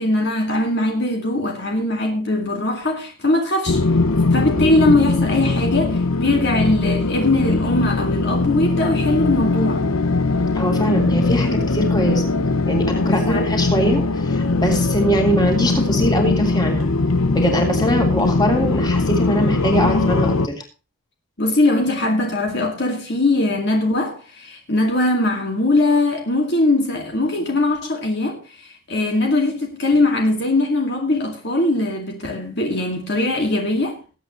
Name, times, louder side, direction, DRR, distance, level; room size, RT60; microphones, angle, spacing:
voice 1, 0.0-3.8 4.3-9.9 13.0-13.5 21.4-34.0, left 2 dB, 50° left, 2.3 m, -20 dB
sound 1, 3.7-20.5, left 3 dB, 80° left, 0.9 m, -20 dB
voice 2, 10.5-12.2 12.7-16.9 17.3-20.6, equal, 20° left, 3.3 m, -22 dB
20.5 x 8.9 x 3.1 m
head